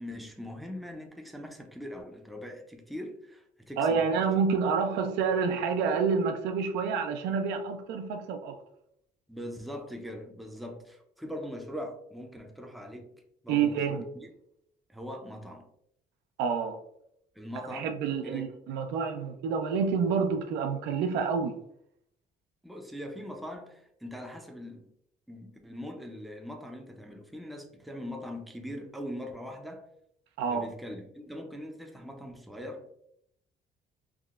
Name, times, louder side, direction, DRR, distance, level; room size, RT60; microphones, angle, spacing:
voice 1, 0.0-4.1 9.3-13.1 13.4-14.0 14.9-15.7 17.4-17.9 18.2-18.5 22.6-24.9 25.3-29.9 30.5-32.9, left 1 dB, ahead, 0.4 m, -41 dB
voice 2, 3.8-8.6 13.5-14.1 16.4-16.8 17.7-21.6 30.4-30.7, right 5 dB, 90° right, 0.4 m, -28 dB
3.5 x 2.0 x 2.3 m
cardioid pair, 110°, 17 cm